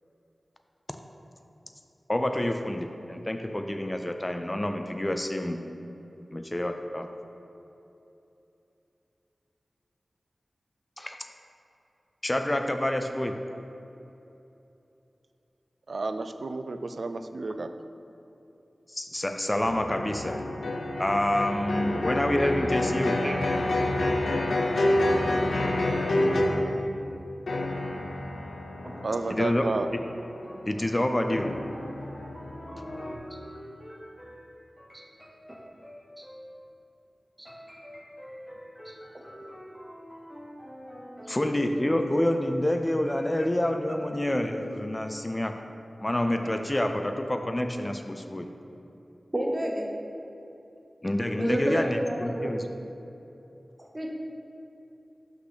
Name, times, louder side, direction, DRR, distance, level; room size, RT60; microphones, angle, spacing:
voice 1, 2.1-5.6 6.3-7.1 11.0-11.2 12.2-13.4 18.9-20.4 21.0-23.2 29.4-29.6 30.7-31.6 41.3-45.5 46.0-48.5 51.0-52.6, left 1 dB, 25° left, 6 dB, 0.4 m, -27 dB
voice 2, 15.9-17.7 21.9-22.0 26.1-27.1 29.0-29.9, right 3 dB, 70° right, 8 dB, 0.3 m, -32 dB
sound 1, 19.6-26.9 27.5-33.2, left 1 dB, 85° left, 0.5 m, -28 dB
sound 2, 28.8-36.6 37.5-42.5 43.0-44.8 46.4-47.0, equal, ahead, 1.3 m, -46 dB
voice 3, 38.8-39.3 41.2-41.3 49.3-49.9 51.4-52.6 53.8-54.1, right 1 dB, 35° right, 0 dB, 1.0 m, -31 dB
5.7 x 3.9 x 5.8 m, 2.9 s
cardioid pair, 40°, 0 cm